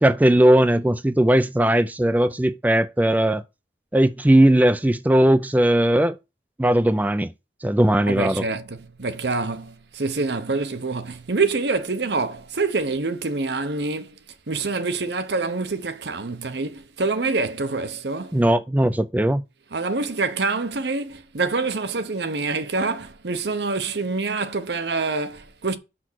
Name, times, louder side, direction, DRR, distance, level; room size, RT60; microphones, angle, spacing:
voice 1, 0.0-3.4 3.9-6.2 6.6-7.3 7.6-8.5 18.3-19.4, right 1 dB, 10° right, 0.4 m, -18 dB
voice 2, 8.1-14.1 14.5-18.4 19.7-25.8, right 3 dB, 70° right, 0.9 m, -26 dB
6.1 x 6.0 x 6.2 m
head